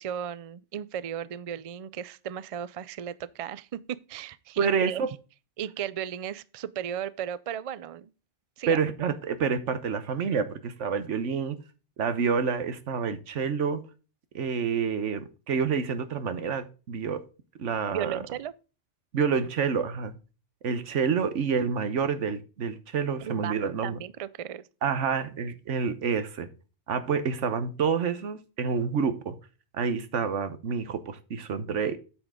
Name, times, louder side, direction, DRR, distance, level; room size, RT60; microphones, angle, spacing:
voice 1, 0.0-5.0 5.6-8.1 8.6-8.8 17.9-18.5 23.2-24.7, right 9 dB, 55° right, 0.4 m, -35 dB
voice 2, 4.6-5.1 8.7-11.6 12.0-13.8 14.3-17.2 17.6-18.2 19.1-20.1 20.6-24.0 24.8-26.5 26.9-29.4 29.7-32.0, right 6 dB, 85° right, 1.3 m, -28 dB
8.7 x 7.1 x 3.7 m
omnidirectional pair, 1.2 m